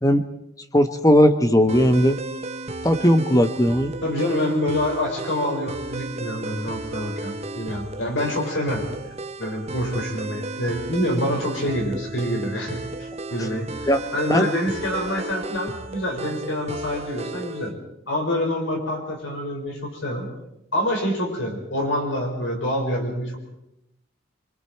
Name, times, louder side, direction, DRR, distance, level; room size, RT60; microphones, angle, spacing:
voice 1, 0.7-2.2 2.8-3.9 13.9-14.0 14.3-14.5, equal, 15° left, 9 dB, 1.1 m, -17 dB
sound 1, 1.7-17.7, right 2 dB, 30° right, 0.9 m, -34 dB
voice 2, 4.0-17.7 18.1-20.3 20.7-23.4, left 1 dB, 65° left, 1 dB, 5.3 m, -26 dB
25.5 x 24.0 x 4.6 m, 0.86 s
head